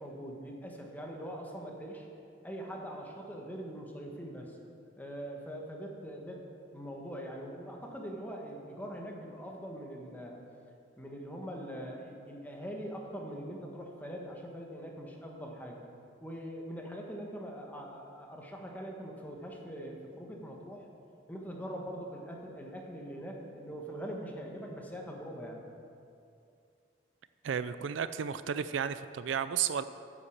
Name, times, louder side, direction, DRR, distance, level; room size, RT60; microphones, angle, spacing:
voice 1, 0.0-2.1 2.4-4.6 5.0-6.4 6.7-10.4 11.0-15.8 16.2-20.9 21.3-25.6, equal, 10° left, 0 dB, 1.5 m, -42 dB
voice 2, 27.4-29.8, right 8 dB, 75° right, 13 dB, 0.4 m, -33 dB
9.8 x 8.2 x 7.2 m, 2.5 s
head